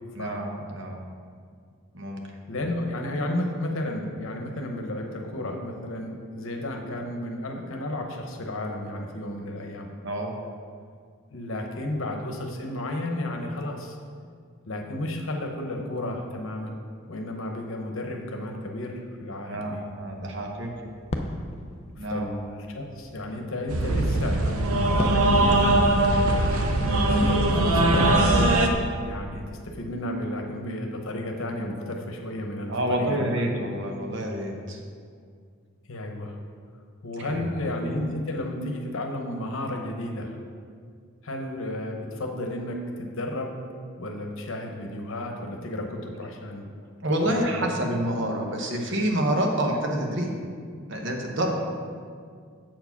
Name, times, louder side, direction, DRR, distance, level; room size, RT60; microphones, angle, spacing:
voice 1, 0.2-1.0 1.9-2.2 10.0-10.3 19.4-20.9 22.0-22.3 32.7-34.8 37.2-37.3 47.0-50.3 50.9-51.5, right 1 dB, 55° right, 2 dB, 1.0 m, -28 dB
voice 2, 2.5-9.9 11.3-14.0 14.7-16.8 17.1-19.8 21.9-25.7 26.8-28.3 29.0-33.5 35.9-36.4 37.0-40.4 41.2-43.5 44.0-46.6 47.2-47.8, left 1 dB, 65° left, 2 dB, 0.9 m, -32 dB
sound 1, 19.7-28.7, left 1 dB, 30° left, 0.4 m, -37 dB
sound 2, 23.7-28.7, right 1 dB, 80° right, 0.7 m, -21 dB
7.5 x 4.7 x 5.9 m, 2.1 s
head